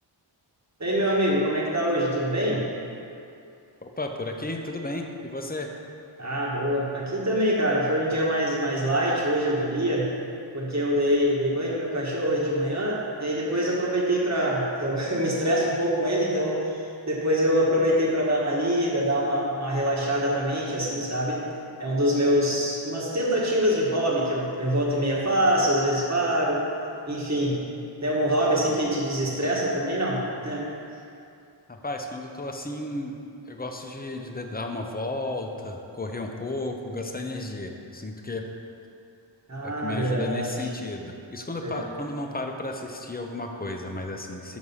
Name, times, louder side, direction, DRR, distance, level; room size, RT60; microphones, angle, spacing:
voice 1, 0.8-2.6 6.2-10.1 10.5-21.4 21.8-26.6 27.1-27.6 28.0-30.6 39.5-40.7 41.6-41.9, equal, 35° right, -4 dB, 1.6 m, -25 dB
voice 2, 3.8-5.7 29.4-29.5 31.7-33.1 33.5-38.5 39.6-44.6, left 2 dB, 20° left, 3 dB, 0.7 m, -33 dB
6.6 x 6.2 x 5.6 m, 2.6 s
wide cardioid pair, 75°, 45 cm